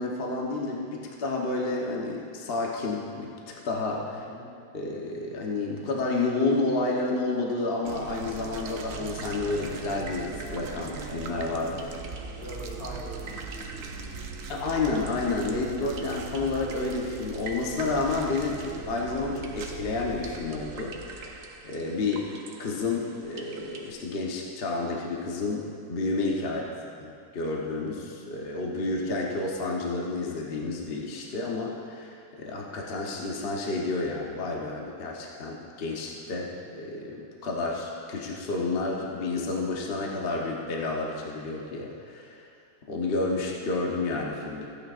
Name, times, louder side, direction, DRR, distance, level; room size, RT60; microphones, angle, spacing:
voice 1, 0.0-4.2 4.7-11.7 14.5-22.3 22.6-26.6 27.0-42.4 42.9-44.7, left 3 dB, 40° left, -1 dB, 1.0 m, -30 dB
voice 2, 4.1-4.5 11.5-12.0 12.3-14.4 26.4-26.8, left 1 dB, 80° left, -6 dB, 2.9 m, -44 dB
sound 1, 7.9-23.9, right 4 dB, 65° right, 0.9 m, -39 dB
15.5 x 9.0 x 2.5 m, 2.4 s
omnidirectional pair, 2.0 m